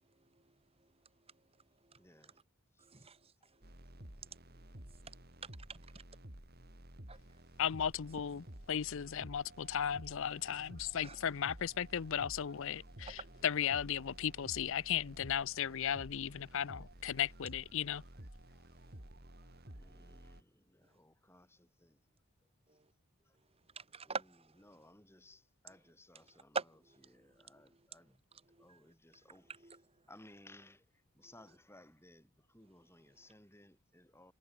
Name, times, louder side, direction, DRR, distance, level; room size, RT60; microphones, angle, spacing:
voice 1, 0.3-0.9 1.3-1.4 1.8-2.0 2.8-5.2 5.4-6.0 7.1-7.4 10.5-10.6 11.0-11.2 13.1-13.4 19.0-19.1 19.9-20.3 22.7-22.9 23.7-24.6 26.5-27.5 28.5-28.8 29.5-29.8, right 4 dB, 25° right, 2.6 m, -47 dB
voice 2, 2.0-2.4 2.7-3.1 3.4-3.5 9.0-9.1 13.0-13.1 18.5-18.7 19.4-22.0 23.2-23.4 24.0-24.2 24.6-26.6 27.1-28.3 28.6-29.8 30.1-34.3, left 1 dB, 10° left, 7.6 m, -61 dB
sound 1, 3.6-20.4, right 1 dB, 45° right, 3.2 m, -53 dB
voice 3, 7.6-18.0, left 9 dB, 60° left, 0.5 m, -36 dB
head